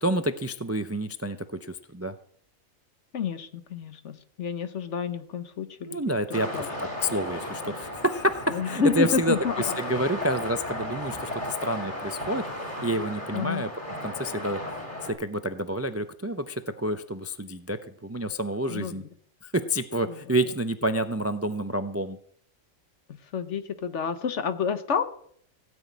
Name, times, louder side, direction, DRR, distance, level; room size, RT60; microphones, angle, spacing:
voice 1, 0.0-2.1 5.9-12.5 12.8-13.7 14.0-14.6 15.0-19.0 19.4-22.2, right 1 dB, 20° right, 10 dB, 0.4 m, -28 dB
voice 2, 3.1-6.0 6.5-6.7 8.5-9.6 13.3-13.6 18.7-19.0 23.3-25.0, left 6 dB, 65° left, 10 dB, 1.3 m, -29 dB
sound 1, 6.3-15.1, left 1 dB, 35° left, 3.9 m, -35 dB
16.5 x 6.2 x 9.4 m, 0.63 s
omnidirectional pair, 1.4 m